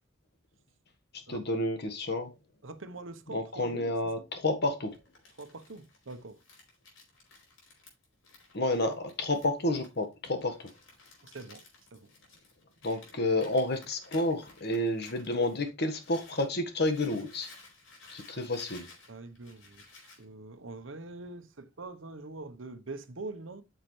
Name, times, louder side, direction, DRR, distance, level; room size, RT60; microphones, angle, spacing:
voice 1, 1.3-2.3 3.3-4.9 8.5-10.7 12.8-17.5 18.1-18.9, left 1 dB, 55° left, 1.5 m, -30 dB
voice 2, 2.6-4.3 5.4-6.4 11.2-11.6 11.9-12.1 19.1-23.6, right 3 dB, 80° right, 1.0 m, -44 dB
Crumpling crinkling, 4.9-16.5 16.8-20.2, left 3 dB, 85° left, 4.4 m, -55 dB
8.8 x 6.7 x 3.2 m
head